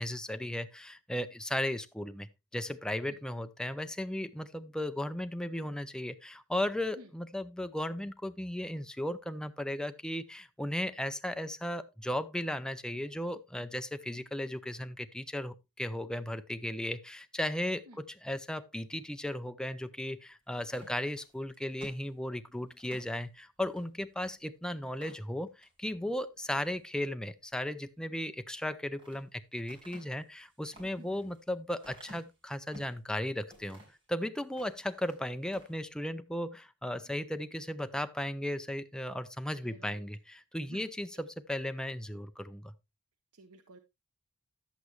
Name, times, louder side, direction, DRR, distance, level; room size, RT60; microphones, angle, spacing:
voice 1, 0.0-2.3 2.5-33.8 34.1-42.7, left 1 dB, 5° left, 0.4 m, -36 dB
sound 1, 20.6-23.1 23.7-23.9 24.3-24.4 24.8-25.8 26.2-26.7 28.5-29.2 29.7-33.0 33.5-34.0 34.4-35.2 35.5-35.8, equal, 25° right, 4.8 m, -54 dB
voice 2, 31.0-31.3 39.6-40.0 40.7-41.2 43.3-43.8, right 2 dB, 90° right, 1.1 m, -54 dB
10.5 x 8.2 x 3.1 m
head